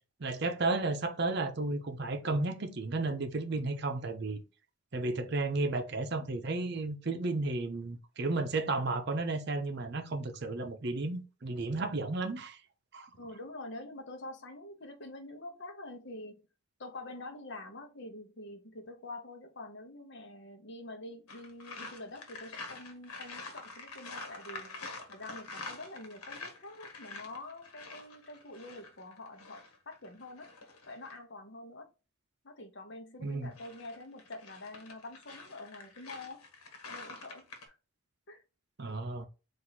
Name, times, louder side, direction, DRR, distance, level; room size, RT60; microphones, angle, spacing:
voice 1, 0.2-4.4 4.9-12.6 12.9-13.1 33.2-33.5 38.8-39.3, right 2 dB, 50° right, 0.6 m, -33 dB
voice 2, 13.2-16.4 16.8-30.5 30.9-31.9 32.4-36.4 36.9-37.8 38.3-38.4, left 2 dB, 50° left, 0.9 m, -46 dB
sound 1, 21.3-31.2 33.3-37.7, left 3 dB, 90° left, 1.2 m, -46 dB
4.5 x 2.6 x 4.0 m
head